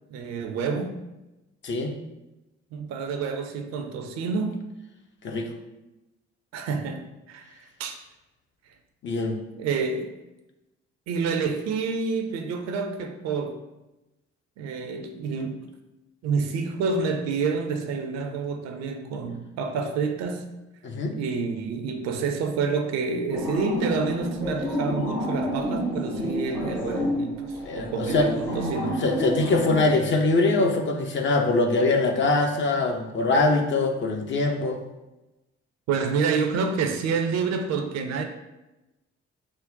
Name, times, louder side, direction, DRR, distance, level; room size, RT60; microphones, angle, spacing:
voice 1, 0.1-1.0 2.7-4.6 6.5-7.0 7.3-8.0 9.6-10.1 11.1-13.6 14.6-15.7 16.2-20.4 21.1-29.0 32.4-32.5 35.9-38.2, right 5 dB, 50° right, 6 dB, 0.5 m, -28 dB
voice 2, 1.6-1.9 5.2-5.5 9.0-9.4 20.8-21.2 26.2-26.3 27.7-28.3 29.0-34.8, left 2 dB, 35° left, 3 dB, 0.5 m, -23 dB
sound 1, 23.3-29.8, equal, 70° left, 1.3 m, -29 dB
3.7 x 2.1 x 3.8 m, 0.99 s
figure-of-eight pair, 40°, 34 cm